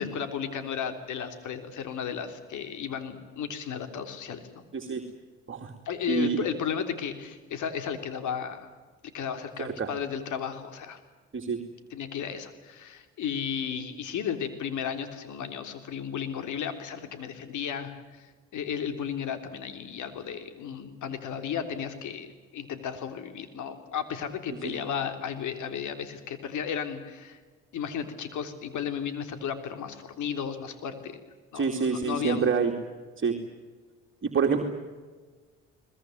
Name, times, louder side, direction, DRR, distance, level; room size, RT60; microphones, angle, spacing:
voice 1, 0.0-4.6 5.8-8.7 9.1-11.0 11.9-22.3 22.5-27.4 27.7-31.2 31.5-32.5, left 7 dB, 70° left, 8 dB, 3.4 m, -34 dB
voice 2, 6.1-6.4 9.6-9.9 11.3-11.6 24.6-24.7 31.5-32.7 33.2-33.4 34.2-34.6, right 5 dB, 40° right, 2 dB, 2.7 m, -27 dB
22.5 x 20.5 x 9.3 m, 1.4 s
supercardioid pair, 60°, 32 cm